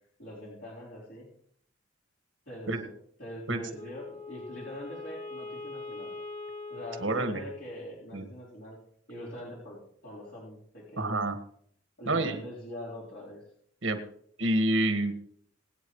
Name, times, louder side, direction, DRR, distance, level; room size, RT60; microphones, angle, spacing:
voice 1, 0.2-1.3 2.5-2.9 3.2-6.1 6.7-8.8 9.1-11.2 12.0-13.4, left 1 dB, 65° left, -8 dB, 4.2 m, -43 dB
Wind instrument woodwind instrument, 3.7-8.2, left 3 dB, 35° left, 1.0 m, -42 dB
voice 2, 7.0-7.4 8.1-8.3 11.0-11.3 12.1-12.4 13.8-14.0 14.4-15.3, right 1 dB, 75° right, 6 dB, 1.8 m, -28 dB
26.0 x 8.9 x 3.2 m, 0.65 s
head